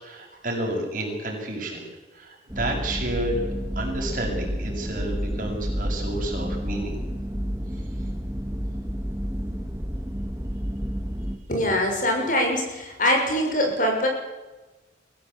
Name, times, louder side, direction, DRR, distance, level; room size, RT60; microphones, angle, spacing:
voice 1, 0.0-1.9 2.1-3.4 3.8-7.0, right 1 dB, 45° right, 0 dB, 7.4 m, -30 dB
sound 1, 2.5-11.4, equal, 15° right, 1.8 m, -30 dB
voice 2, 11.5-14.1, left 1 dB, 45° left, 2 dB, 6.4 m, -23 dB
23.5 x 16.5 x 8.7 m, 1.1 s
head